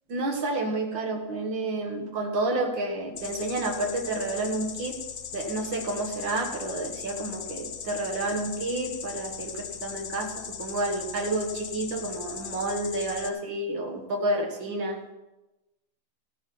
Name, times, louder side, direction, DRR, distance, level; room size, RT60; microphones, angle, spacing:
voice 1, 0.1-5.0 5.3-15.0, right 2 dB, 90° right, 3 dB, 2.4 m, -30 dB
sound 1, 3.2-13.3, left 8 dB, 75° left, 1.6 m, -39 dB
14.5 x 9.2 x 5.8 m, 1.0 s
omnidirectional pair, 2.0 m